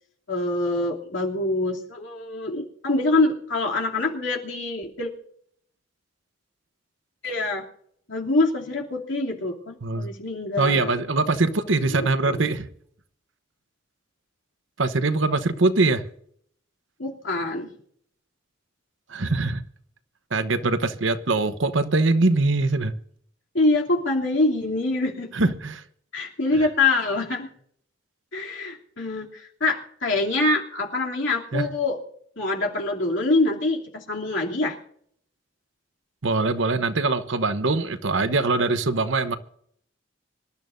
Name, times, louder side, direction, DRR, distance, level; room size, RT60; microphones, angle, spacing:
voice 1, 0.3-5.1 7.2-7.6 8.1-10.9 11.9-12.5 17.0-17.7 23.5-25.3 26.1-27.5 28.3-32.0 32.4-34.8, left 2 dB, 65° left, 2.8 m, -25 dB
voice 2, 10.6-12.7 14.8-16.0 19.1-19.6 20.3-22.9 25.3-25.8 31.5-31.6 36.2-39.4, right 3 dB, 70° right, 1.0 m, -22 dB
25.5 x 12.5 x 2.6 m
head